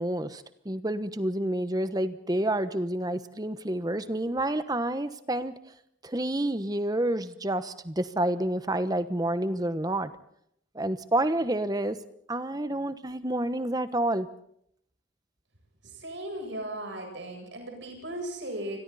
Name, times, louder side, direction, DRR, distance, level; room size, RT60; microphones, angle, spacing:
voice 1, 0.0-5.5 6.0-10.1 10.7-12.0 12.3-14.3, right 1 dB, 20° right, 12 dB, 1.1 m, -29 dB
voice 2, 15.8-18.8, right 1 dB, 65° right, 3 dB, 7.9 m, -37 dB
29.0 x 21.5 x 4.2 m, 0.71 s
head